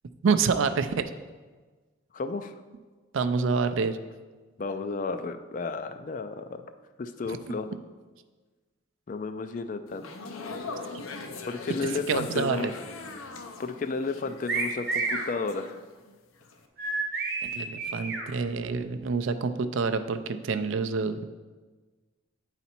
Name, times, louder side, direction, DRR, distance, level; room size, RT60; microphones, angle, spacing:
voice 1, 0.2-1.1 3.1-4.0 7.5-7.6 12.1-12.7 17.4-21.2, right 5 dB, 65° right, 9 dB, 0.4 m, -27 dB
voice 2, 2.1-2.5 4.6-6.6 7.0-7.7 9.1-10.1 11.5-12.7 13.6-15.8, left 4 dB, 40° left, 9 dB, 0.3 m, -32 dB
sound 1, 9.9-16.1 16.4-16.7, left 3 dB, 80° left, 0.6 m, -41 dB
sound 2, 14.5-15.3 16.8-18.2, right 3 dB, 50° right, 1.0 m, -29 dB
9.0 x 4.1 x 4.3 m, 1.3 s
head